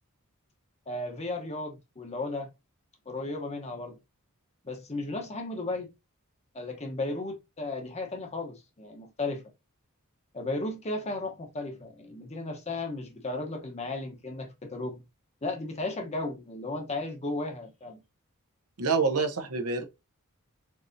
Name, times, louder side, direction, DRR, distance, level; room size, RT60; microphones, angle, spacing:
voice 1, 0.9-2.5 3.1-4.0 4.6-5.9 6.5-9.4 10.3-15.0 15.4-18.0, left 2 dB, 30° left, 1.0 m, -35 dB
voice 2, 18.8-19.8, right 4 dB, 75° right, 1.0 m, -27 dB
4.6 x 4.1 x 2.7 m
head